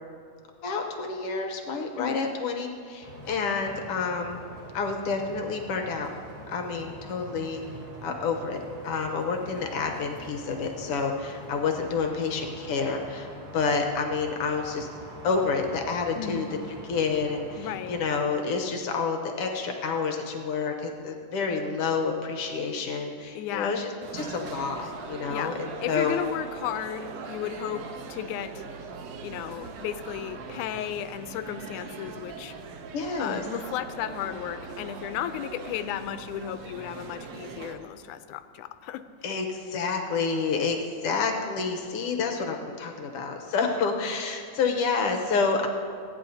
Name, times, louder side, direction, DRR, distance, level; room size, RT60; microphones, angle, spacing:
voice 1, 0.6-4.4 4.7-6.1 6.5-7.6 8.0-8.6 8.8-13.3 13.5-14.9 15.2-16.4 16.9-26.2 32.9-33.4 39.2-45.7, left 4 dB, 65° left, 3 dB, 1.5 m, -29 dB
sound 1, 3.0-18.0, right 1 dB, 55° right, 3.7 m, -44 dB
voice 2, 16.1-16.5 17.6-18.0 23.3-23.7 25.3-25.5 25.8-28.6 29.2-32.5 33.2-39.0, left 11 dB, 85° left, 11 dB, 2.1 m, -34 dB
sound 2, 24.0-37.7, right 5 dB, 70° right, 1.9 m, -41 dB
28.0 x 9.6 x 2.8 m, 2.3 s
omnidirectional pair, 3.5 m